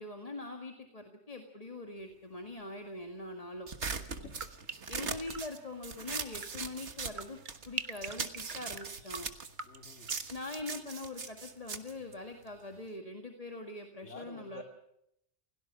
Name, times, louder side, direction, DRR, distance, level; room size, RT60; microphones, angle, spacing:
voice 1, 0.0-3.7 4.9-7.4 7.7-9.3 10.3-14.6, left 2 dB, 30° left, 3 dB, 2.0 m, -43 dB
sound 1, 3.7-7.7 8.0-12.8, right 5 dB, 70° right, 1.8 m, -40 dB
voice 2, 3.9-4.5 9.6-10.1 14.0-14.6, left 1 dB, 70° left, 5 dB, 3.0 m, -49 dB
sound 2, 4.2-12.2 12.4-13.0, right 5 dB, 40° right, 1.2 m, -47 dB
29.0 x 17.5 x 5.9 m, 0.77 s
omnidirectional pair, 1.2 m